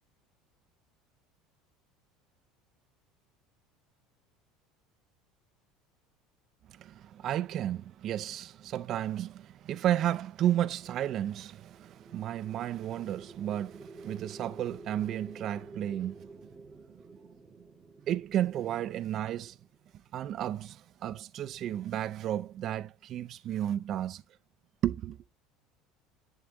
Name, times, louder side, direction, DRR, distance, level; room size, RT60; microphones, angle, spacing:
voice 1, 6.7-16.3 18.1-19.6 20.1-24.2 24.8-25.2, right 11 dB, 45° right, 0.3 m, -33 dB
sound 1, 11.7-19.8, right 2 dB, 5° right, 0.9 m, -51 dB
10.0 x 3.5 x 2.9 m
supercardioid pair, 130°, 0 cm